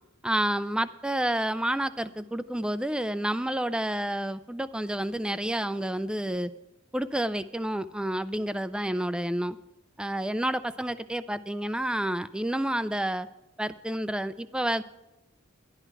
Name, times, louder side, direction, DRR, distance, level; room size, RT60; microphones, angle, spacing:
voice 1, 0.2-6.5 6.9-9.6 10.0-13.3 13.6-14.8, right 1 dB, 5° right, 13 dB, 0.3 m, -29 dB
12.0 x 11.0 x 4.5 m, 1.0 s
head